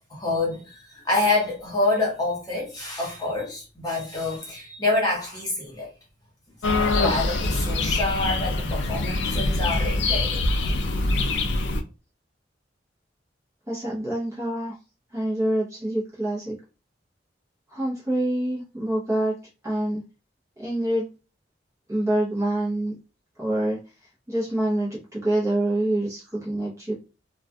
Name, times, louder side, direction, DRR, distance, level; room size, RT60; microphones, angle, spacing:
voice 1, 0.1-5.9 6.8-11.4, left 2 dB, 20° left, 1.1 m, -27 dB
sound 1, 6.6-11.8, left 2 dB, 75° left, 0.4 m, -24 dB
voice 2, 13.7-14.8 15.1-16.6 17.7-19.3 19.6-20.0 20.6-21.1 21.9-23.0 23.4-23.8 24.3-26.9, right 1 dB, 15° right, 0.6 m, -26 dB
2.3 x 2.2 x 2.6 m
head